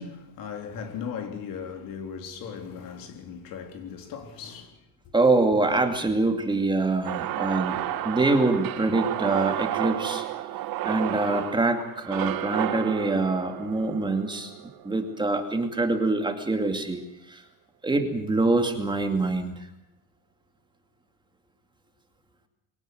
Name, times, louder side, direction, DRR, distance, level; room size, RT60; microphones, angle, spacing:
voice 1, 0.0-4.8 5.1-5.2 6.1-6.2, left 6 dB, 60° left, 3.6 m, -38 dB
voice 2, 5.1-10.2 10.8-14.5 14.8-17.0 17.3-17.4 17.8-19.7, right 2 dB, 10° right, 2.4 m, -25 dB
sound 1, 7.0-15.2, right 13 dB, 65° right, 2.1 m, -31 dB
23.5 x 18.0 x 7.9 m
cardioid pair, 140°, 38 cm